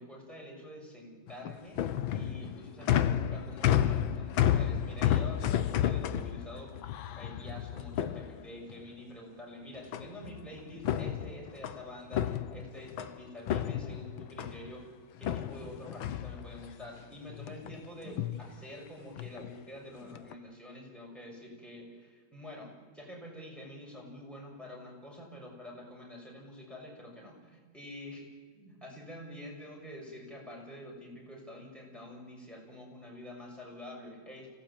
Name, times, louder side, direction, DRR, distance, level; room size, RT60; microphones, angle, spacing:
voice 1, 0.0-1.8 2.1-6.8 7.1-14.8 15.2-28.3 28.5-34.5, left 1 dB, ahead, -2 dB, 6.6 m, -47 dB
sound 1, 1.3-8.8 9.9-10.4 10.7-13.2 13.5-14.7 15.2-16.9 17.3-17.8 18.1-18.4 19.2-19.5 20.0-20.3, left 10 dB, 75° left, 1.7 m, -31 dB
25.0 x 17.5 x 8.8 m, 1.4 s
omnidirectional pair, 2.3 m